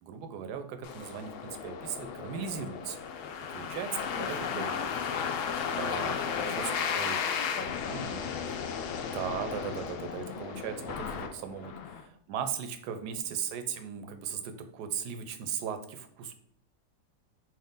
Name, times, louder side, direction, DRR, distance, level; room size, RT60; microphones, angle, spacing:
voice 1, 0.0-3.0 3.5-3.9 4.2-4.7 5.8-6.6 6.9-7.2 7.9-8.3 9.1-16.3, right 7 dB, 75° right, 8 dB, 1.1 m, -38 dB
sound 1, 0.8-12.0, left 7 dB, 80° left, 0.7 m, -35 dB
voice 2, 3.2-3.8 4.1-5.9 6.2-8.8 10.0-10.9 11.7-12.0, left 4 dB, 60° left, 3 dB, 1.0 m, -45 dB
4.6 x 3.1 x 3.6 m, 0.66 s
omnidirectional pair, 1.9 m